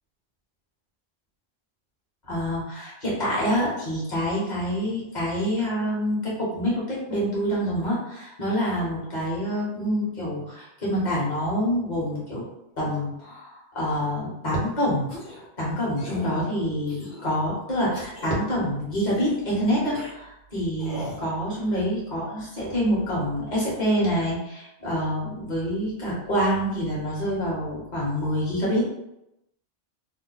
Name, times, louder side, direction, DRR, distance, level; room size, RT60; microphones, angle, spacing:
voice 1, 2.3-12.5 12.8-15.1 15.3-28.8, equal, 40° left, -6 dB, 1.3 m, -26 dB
sound 1, 15.1-15.4 16.0-16.3 16.9-17.4 17.9-18.3 19.0-19.4 19.9-20.1 20.8-21.2, left 1 dB, 90° left, 1.1 m, -39 dB
2.8 x 2.2 x 3.9 m, 0.85 s
omnidirectional pair, 1.1 m